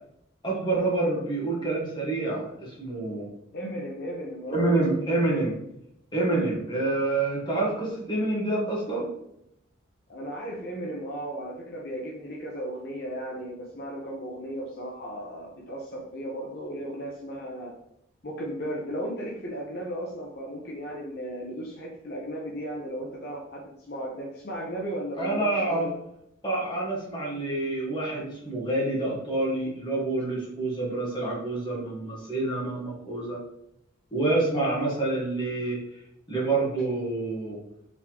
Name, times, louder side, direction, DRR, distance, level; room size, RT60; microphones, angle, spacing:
voice 1, 0.4-3.3 4.5-5.6 6.1-9.1 25.2-25.9 26.4-33.4 34.1-35.8 36.3-37.6, right 2 dB, 20° left, -4 dB, 1.3 m, -27 dB
voice 2, 3.5-4.8 10.1-17.7 18.2-25.9 34.5-35.0, right 1 dB, 50° left, -2 dB, 0.6 m, -35 dB
4.1 x 3.5 x 2.9 m, 0.77 s
head